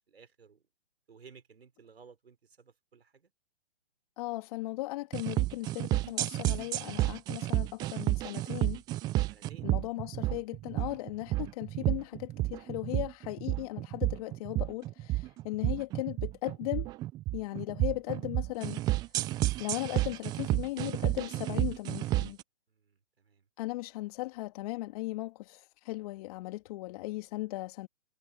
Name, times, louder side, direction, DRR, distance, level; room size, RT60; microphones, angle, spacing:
voice 1, 0.1-0.6 1.1-3.3 9.3-9.7 11.0-11.2 22.7-23.5, right 6 dB, 80° right, 6.0 m, -57 dB
voice 2, 4.2-8.8 9.6-16.9 17.3-18.8 19.6-22.4 23.6-27.9, left 20 dB, 35° left, 2.3 m, -37 dB
sound 1, 5.1-22.4, right 17 dB, 15° right, 0.5 m, -31 dB
hypercardioid pair, 135°, 31 cm